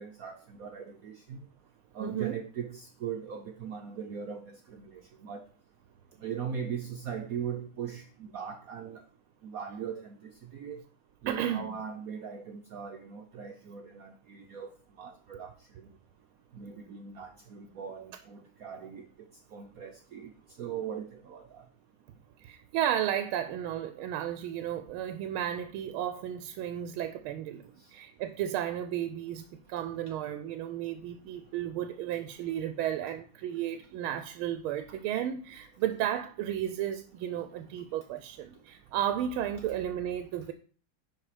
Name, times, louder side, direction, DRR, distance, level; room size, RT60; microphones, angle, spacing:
voice 1, 0.0-1.4 1.9-5.4 6.2-9.0 9.4-10.8 11.2-15.9 16.5-19.1 19.5-20.3 20.6-21.7, right 7 dB, 75° right, 0.8 m, -40 dB
voice 2, 2.0-2.4 11.3-11.8 22.4-40.5, right 10 dB, 90° right, 1.5 m, -33 dB
10.5 x 4.3 x 4.9 m
omnidirectional pair, 2.3 m